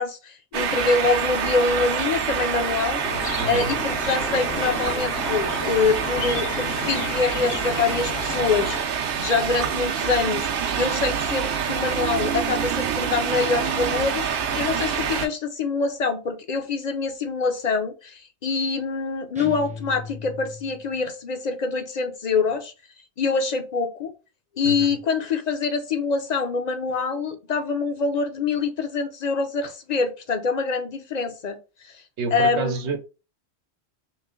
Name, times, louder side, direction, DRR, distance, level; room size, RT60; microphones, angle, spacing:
voice 1, 0.0-3.0 3.5-8.8 9.2-10.5 10.8-22.7 23.2-24.1 24.6-31.6 32.3-32.7, left 4 dB, 50° left, 7 dB, 0.5 m, -25 dB
sound 1, 0.5-15.3, right 7 dB, 60° right, 0.7 m, -26 dB
sound 2, 3.0-8.8, left 3 dB, 80° left, 1.2 m, -32 dB
voice 2, 3.4-3.7 24.6-24.9 32.2-33.0, right 4 dB, 80° right, 6 dB, 1.0 m, -28 dB
sound 3, 19.3-21.1, left 5 dB, 10° right, 0.6 m, -38 dB
3.1 x 3.0 x 3.6 m, 0.31 s
omnidirectional pair, 1.1 m